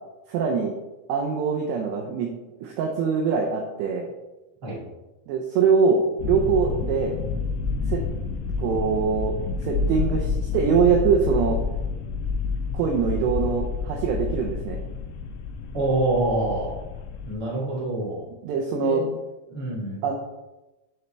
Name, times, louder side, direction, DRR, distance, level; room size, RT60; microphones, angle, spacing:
voice 1, 0.3-0.7 1.1-2.3 2.6-4.1 5.3-7.2 7.9-8.0 8.6-11.6 12.7-14.8 18.4-19.1 20.0-20.1, right 5 dB, 85° right, 1 dB, 2.4 m, -23 dB
sound 1, 6.2-17.4, left 4 dB, 80° left, 2.7 m, -29 dB
voice 2, 15.7-16.7 17.2-18.2 18.8-19.0 19.5-20.0, right 2 dB, 40° right, -6 dB, 1.5 m, -26 dB
10.5 x 4.1 x 3.3 m, 1.0 s
omnidirectional pair, 5.7 m